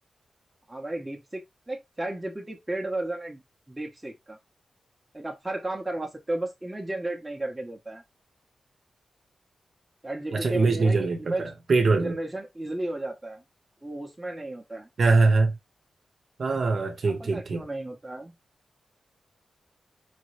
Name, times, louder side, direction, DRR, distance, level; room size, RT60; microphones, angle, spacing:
voice 1, 0.7-3.4 3.7-4.4 5.1-8.0 10.0-11.5 12.0-13.4 13.8-14.9 17.0-18.3, right 2 dB, 15° right, 1.0 m, -34 dB
voice 2, 10.3-12.1 15.0-15.5 16.4-17.6, right 3 dB, 50° right, 1.1 m, -23 dB
5.2 x 3.1 x 3.3 m
wide cardioid pair, 145°, 0 cm